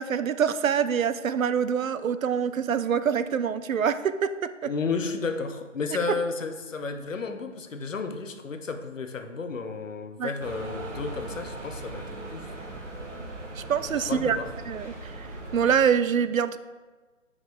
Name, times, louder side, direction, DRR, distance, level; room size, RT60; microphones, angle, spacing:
voice 1, 0.0-4.3 4.6-4.7 10.2-10.3 13.6-14.4 14.7-15.3 15.5-16.6, right 7 dB, 85° right, 12 dB, 0.5 m, -25 dB
voice 2, 4.6-12.5 13.9-14.5, left 4 dB, 70° left, 8 dB, 0.8 m, -32 dB
sound 1, 10.4-15.7, right 2 dB, 65° right, 1.3 m, -39 dB
7.3 x 4.9 x 3.4 m, 1.3 s
figure-of-eight pair, 150°, 39 cm